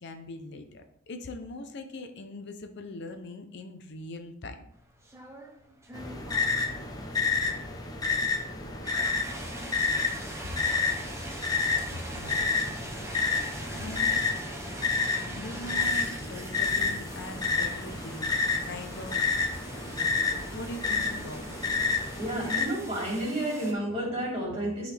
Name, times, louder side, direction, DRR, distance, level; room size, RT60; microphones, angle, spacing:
voice 1, 0.0-4.6 10.4-10.6 11.8-12.6 13.7-14.3 15.3-18.4 18.6-19.4 20.5-21.6 22.5-22.6, left 2 dB, 55° left, 7 dB, 0.6 m, -41 dB
sound 1, 4.8-23.7, right 1 dB, 15° right, 0.9 m, -43 dB
sound 2, 5.9-22.6, left 4 dB, 20° left, 0.9 m, -29 dB
voice 2, 22.1-24.9, right 1 dB, 30° right, -4 dB, 2.9 m, -31 dB
11.0 x 4.0 x 3.4 m, 0.77 s
head